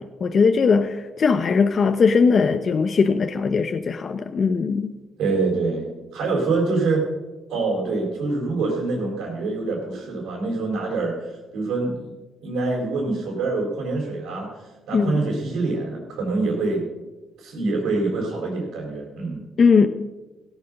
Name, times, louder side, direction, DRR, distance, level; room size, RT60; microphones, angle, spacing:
voice 1, 0.0-4.9 14.9-15.2 19.6-19.9, left 5 dB, 45° left, 0.8 m, -19 dB
voice 2, 5.2-7.0 7.5-12.1 12.4-14.5 14.9-16.8 17.4-19.4, right 3 dB, 85° right, 4.3 m, -25 dB
17.0 x 8.3 x 6.5 m
cardioid pair, 90°, 0 cm